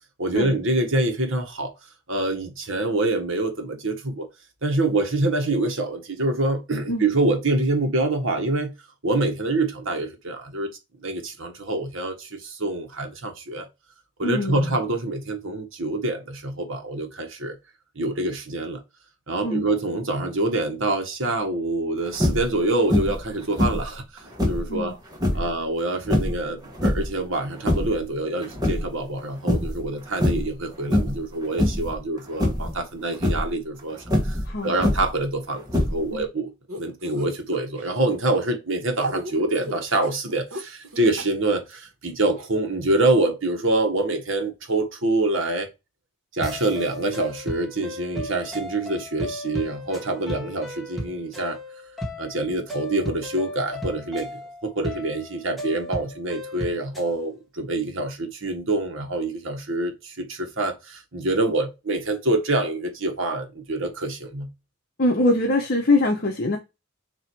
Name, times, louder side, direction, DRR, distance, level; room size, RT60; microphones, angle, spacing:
voice 1, 0.2-1.7 2.1-4.3 4.6-8.7 9.0-10.7 11.0-13.7 14.2-17.6 17.9-18.8 19.3-25.0 25.3-45.7 46.3-51.6 52.2-64.5, right 2 dB, 65° right, 1.5 m, -26 dB
voice 2, 14.2-14.6 19.4-19.6 24.7-24.9 25.3-25.4 34.5-35.0 36.1-36.2 65.0-66.6, left 2 dB, 45° left, 1.0 m, -23 dB
sound 1, 22.1-22.6 22.9-23.3 23.6-24.7 25.1-25.5 26.1-27.2 27.5-28.0 28.4-29.2 29.5-29.8 30.1-30.6 30.9-31.3 31.6-31.9 32.4-32.8 33.1-33.5 34.1-35.2 35.7-36.2, left 1 dB, 20° right, 1.4 m, -23 dB
sound 2, 36.7-37.9 38.9-41.2 41.7-41.8 42.4-42.5, right 1 dB, 90° right, 1.8 m, -34 dB
sound 3, 46.4-57.1, left 1 dB, ahead, 1.4 m, -35 dB
6.9 x 3.0 x 4.6 m
head